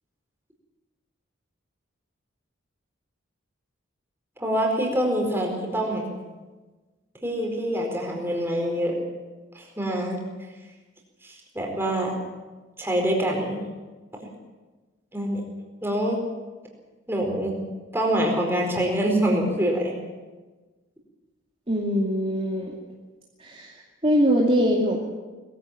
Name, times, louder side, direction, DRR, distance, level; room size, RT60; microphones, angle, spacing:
voice 1, 4.4-6.0 7.2-9.0 9.5-10.2 11.2-12.2 12.8-13.6 15.1-15.4 15.8-16.2 17.1-17.6 17.9-20.0, right 1 dB, 10° right, 0 dB, 4.6 m, -25 dB
voice 2, 21.7-22.7 23.5-23.7 24.0-25.0, equal, 30° right, -3 dB, 2.5 m, -22 dB
21.5 x 15.5 x 9.0 m, 1.3 s
head